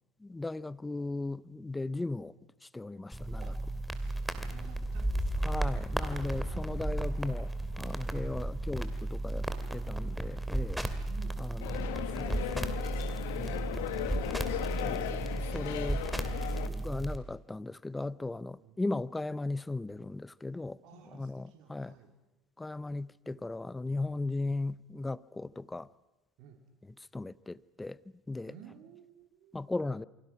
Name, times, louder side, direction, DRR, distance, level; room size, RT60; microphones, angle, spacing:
voice 1, 0.2-2.3 2.7-3.4 5.4-7.5 7.8-9.5 9.7-10.9 11.4-12.8 13.4-13.6 14.8-16.0 16.6-20.8 21.1-21.9 22.6-25.9 27.1-28.0 28.3-28.5 29.5-30.0, left 2 dB, 10° left, 0.8 m, -37 dB
sound 1, 3.1-17.2, right 1 dB, 5° right, 2.6 m, -34 dB
voice 2, 3.9-5.6 6.4-6.8 11.0-11.4 18.6-18.7 20.8-22.1 26.4-26.6 28.5-29.6, right 8 dB, 65° right, 3.3 m, -54 dB
sound 2, 11.6-16.7, left 12 dB, 80° left, 1.8 m, -37 dB
28.5 x 24.0 x 6.0 m
hypercardioid pair, 85°, 0 cm